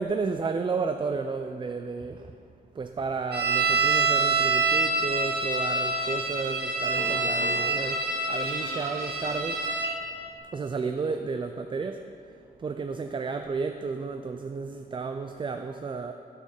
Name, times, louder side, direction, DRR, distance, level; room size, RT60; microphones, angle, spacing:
voice 1, 0.0-2.3 2.8-9.6 10.5-12.1 12.6-16.1, right 4 dB, 30° right, 6 dB, 0.3 m, -32 dB
sound 1, 3.3-9.9, right 3 dB, 70° right, 1.4 m, -26 dB
sound 2, 7.0-7.6, left 3 dB, 60° left, 1.2 m, -36 dB
6.5 x 5.5 x 4.9 m, 2.4 s
cardioid pair, 55°, 18 cm